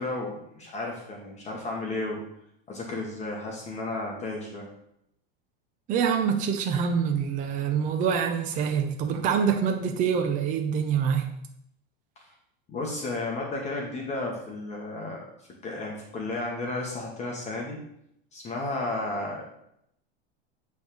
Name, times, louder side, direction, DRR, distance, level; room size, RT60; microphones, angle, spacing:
voice 1, 0.0-2.2 2.7-4.7 12.7-15.2 15.6-17.8 18.3-19.4, left 2 dB, 20° left, -1 dB, 1.3 m, -33 dB
voice 2, 5.9-11.3, right 7 dB, 25° right, 4 dB, 0.6 m, -25 dB
8.3 x 3.5 x 6.3 m, 0.76 s
supercardioid pair, 155°, 31 cm